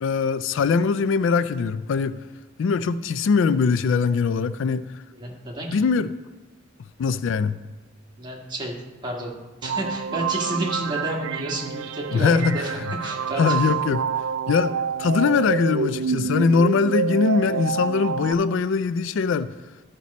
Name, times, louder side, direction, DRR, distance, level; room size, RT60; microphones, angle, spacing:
voice 1, 0.0-2.2 2.6-4.8 5.7-6.1 7.0-7.6 12.1-12.9 13.4-14.0 14.5-19.5, left 5 dB, 65° left, 14 dB, 0.3 m, -22 dB
voice 2, 5.1-5.7 8.2-8.8 9.0-13.7, right 1 dB, 25° right, -1 dB, 1.6 m, -30 dB
sound 1, 9.6-18.3, right 6 dB, 70° right, 0.3 m, -28 dB
13.0 x 5.3 x 4.1 m, 1.2 s
head